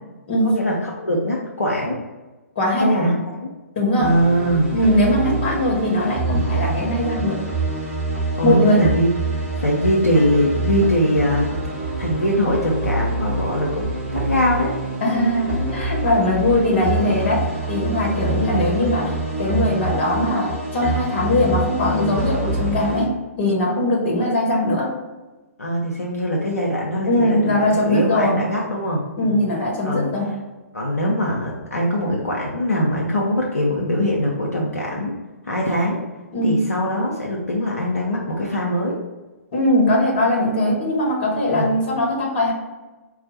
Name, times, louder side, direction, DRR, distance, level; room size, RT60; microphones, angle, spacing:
voice 1, 0.4-2.0 2.8-3.5 4.0-4.7 8.4-9.1 9.6-11.5 12.0-14.8 25.6-29.4 29.8-30.1 30.7-35.1 35.4-36.0 36.4-39.0 41.5-41.7, equal, 80° left, -3 dB, 0.7 m, -22 dB
voice 2, 2.5-3.1 3.7-4.1 4.7-7.4 8.4-8.8 15.0-24.9 27.0-28.4 29.2-30.3 36.3-36.6 39.5-42.5, left 1 dB, 45° left, -2 dB, 1.4 m, -20 dB
sound 1, 4.0-23.1, right 2 dB, 10° right, 1.4 m, -26 dB
4.3 x 2.4 x 4.0 m, 1.2 s
figure-of-eight pair, 120°, 8 cm